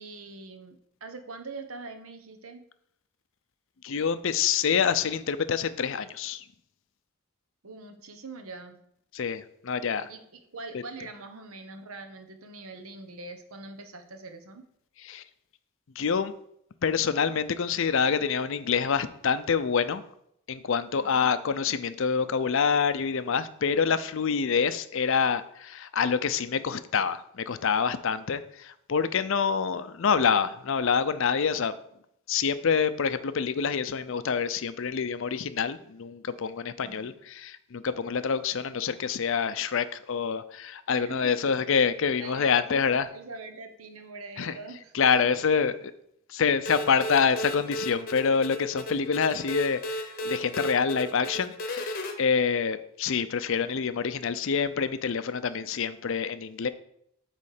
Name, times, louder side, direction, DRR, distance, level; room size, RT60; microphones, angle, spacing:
voice 1, 0.0-2.6 7.6-8.8 10.1-14.6 20.9-21.3 24.0-24.1 36.8-37.2 40.9-41.3 42.2-44.9, right 3 dB, 75° right, 6 dB, 1.0 m, -43 dB
voice 2, 3.8-6.4 9.1-10.1 15.0-15.2 16.0-16.3 16.8-20.0 20.5-31.7 32.3-43.1 44.4-44.6 44.9-45.9 46.3-56.7, left 6 dB, 60° left, 13 dB, 0.5 m, -26 dB
sound 1, 46.6-52.1, left 1 dB, 40° left, 0.9 m, -35 dB
8.3 x 3.2 x 6.5 m, 0.72 s
head